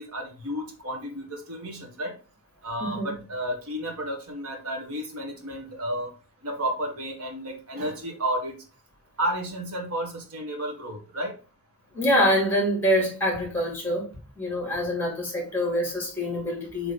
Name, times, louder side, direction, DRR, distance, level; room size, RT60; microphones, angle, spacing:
voice 1, 0.0-2.2 2.6-6.1 6.4-8.6 9.2-11.3, right 1 dB, 85° right, 1.7 m, -32 dB
voice 2, 2.8-3.1 11.9-14.1 14.4-16.9, equal, 10° left, 2.8 m, -25 dB
7.3 x 3.5 x 4.1 m
head